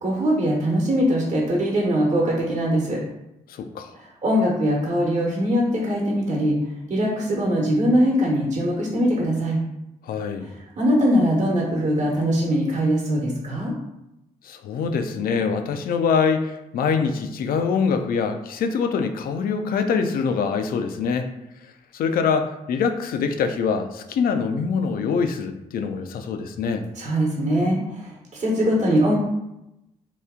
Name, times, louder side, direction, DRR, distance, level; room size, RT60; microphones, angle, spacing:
voice 1, 0.0-3.0 3.9-6.5 6.9-9.6 10.8-13.7 26.9-29.1, equal, 45° right, -2 dB, 1.0 m, -21 dB
voice 2, 3.5-3.9 10.0-10.5 14.4-21.3 21.6-26.9, left 5 dB, 65° left, 7 dB, 0.4 m, -24 dB
2.9 x 2.3 x 3.6 m, 0.89 s
supercardioid pair, 50°, 16 cm